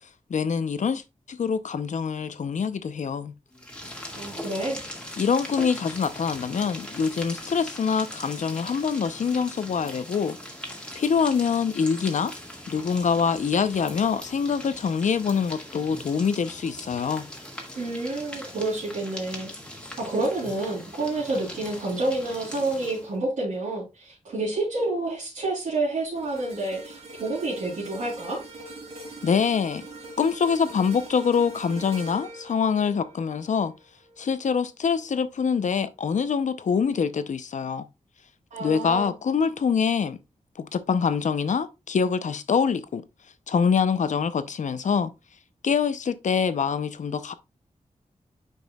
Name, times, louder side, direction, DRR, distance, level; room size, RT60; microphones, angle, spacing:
voice 1, 0.3-1.0 1.3-3.3 5.2-10.4 10.9-12.3 12.7-17.3 29.2-29.8 30.2-33.7 34.2-37.8 38.6-40.2 40.6-43.0 43.5-45.1 45.6-47.3, left 6 dB, 75° left, 0.6 m, -25 dB
Retreating Earthworms, 3.5-23.2, left 1 dB, 10° left, 1.7 m, -40 dB
voice 2, 4.1-4.8 17.7-19.5 20.0-28.4 38.5-39.1, right 2 dB, 85° right, 3.4 m, -29 dB
sound 1, 26.2-34.5 34.9-35.2, right 2 dB, 55° right, 2.8 m, -43 dB
9.3 x 5.4 x 2.3 m
wide cardioid pair, 125°, 13 cm